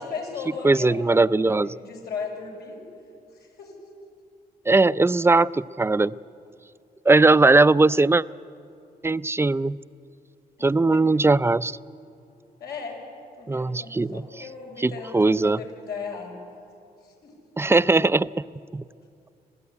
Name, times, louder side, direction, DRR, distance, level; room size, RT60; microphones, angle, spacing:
voice 1, 0.0-1.2 1.5-2.8 3.3-3.7 10.9-11.0 12.6-13.0 13.4-16.3 17.0-17.3, left 5 dB, 80° left, 0 dB, 6.0 m, -36 dB
voice 2, 0.6-1.7 4.7-6.1 7.1-8.2 9.0-9.8 10.6-11.8 13.5-14.2 14.8-15.6 17.6-18.4 18.7-18.8, right 3 dB, 15° right, 16 dB, 0.5 m, -19 dB
26.0 x 16.0 x 9.7 m, 2.5 s
cardioid pair, 80°, 16 cm